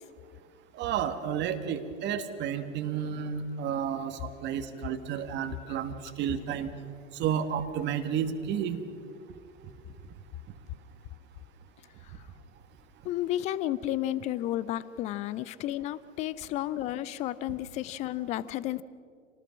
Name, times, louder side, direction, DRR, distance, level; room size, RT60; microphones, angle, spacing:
voice 1, 0.7-6.7 7.1-8.8, right 8 dB, 30° right, 8 dB, 1.6 m, -31 dB
voice 2, 13.0-18.8, left 13 dB, 20° left, 19 dB, 0.5 m, -32 dB
27.0 x 19.0 x 6.2 m, 2.2 s
figure-of-eight pair, 100°, 38 cm